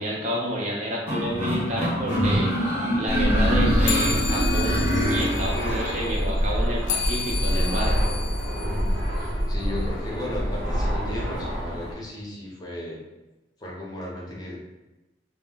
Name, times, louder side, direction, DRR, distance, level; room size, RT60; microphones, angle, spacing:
voice 1, 0.0-8.0, equal, 40° right, -3 dB, 0.5 m, -30 dB
sound 1, 1.1-5.9, equal, 10° right, 0.8 m, -25 dB
Fixed-wing aircraft airplane, 3.1-11.9, equal, 75° right, 0.9 m, -26 dB
sound 2, 3.8-9.7, left 6 dB, 85° left, 0.3 m, -33 dB
voice 2, 8.6-13.0 13.6-14.6, left 1 dB, 20° left, -5 dB, 0.7 m, -35 dB
2.2 x 2.1 x 3.7 m, 1.0 s
head